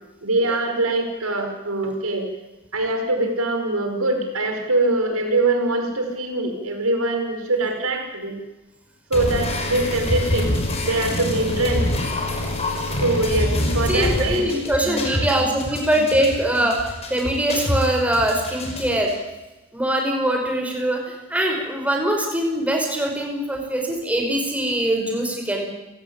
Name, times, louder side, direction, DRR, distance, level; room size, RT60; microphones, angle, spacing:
voice 1, 0.2-2.3 2.7-8.4 9.1-10.5 10.8-11.9 13.0-15.4, right 2 dB, 80° right, 4 dB, 5.3 m, -23 dB
sound 1, 9.1-19.1, left 1 dB, 30° left, 5.5 m, -26 dB
voice 2, 13.9-19.1 19.7-25.7, right 1 dB, 5° right, 1 dB, 5.2 m, -22 dB
30.0 x 17.0 x 8.9 m, 1.1 s
head